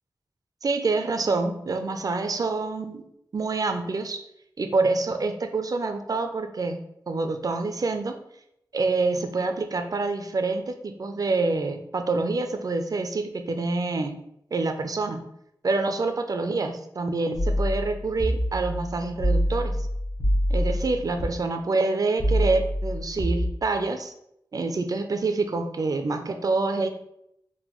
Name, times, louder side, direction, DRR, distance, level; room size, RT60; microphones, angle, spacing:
voice 1, 0.6-3.0 3.3-4.2 4.6-8.2 8.7-14.2 14.5-15.3 15.6-19.9 20.5-24.1 24.5-26.9, right 3 dB, 50° right, 7 dB, 0.4 m, -27 dB
sound 1, 17.3-21.3 22.2-23.5, equal, 50° left, 0.9 m, -26 dB
3.7 x 2.1 x 3.0 m, 0.77 s
wide cardioid pair, 65°, 8 cm